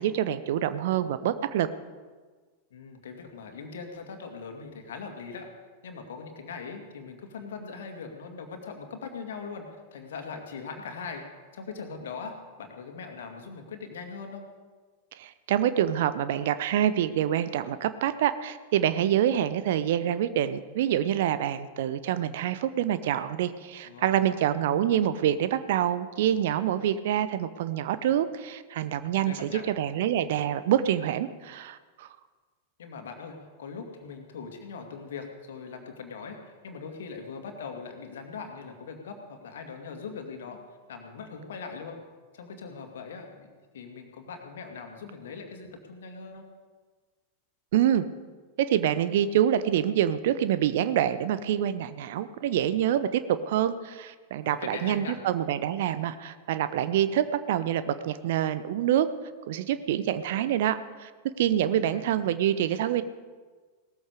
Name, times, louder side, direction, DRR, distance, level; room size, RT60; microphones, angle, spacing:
voice 1, 0.0-1.7 15.1-32.1 47.7-48.1 48.6-59.1 59.5-61.1 61.4-63.0, right 10 dB, 55° right, 13 dB, 0.8 m, -26 dB
voice 2, 2.7-5.5 5.8-9.6 9.9-11.3 11.5-14.4 23.8-24.3 29.2-29.7 32.8-40.6 40.9-42.0 42.3-43.5 43.7-46.4 54.4-55.2 61.7-62.1, left 5 dB, 60° left, 4 dB, 2.3 m, -41 dB
18.0 x 13.5 x 5.0 m, 1.4 s
figure-of-eight pair, 90°, 0 cm